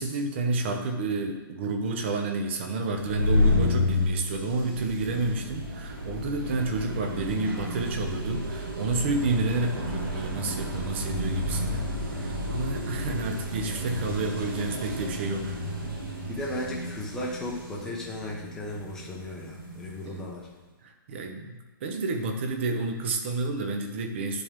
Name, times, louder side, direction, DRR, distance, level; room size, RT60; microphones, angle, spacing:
voice 1, 0.0-15.6 20.0-20.2 20.8-24.4, right 3 dB, 30° right, 4 dB, 0.7 m, -30 dB
sound 1, 2.9-20.3, left 2 dB, 75° right, 2.0 m, -31 dB
voice 2, 16.3-20.5, left 1 dB, 5° left, -4 dB, 0.7 m, -35 dB
10.0 x 3.7 x 3.5 m, 1.1 s
hypercardioid pair, 170°, 12 cm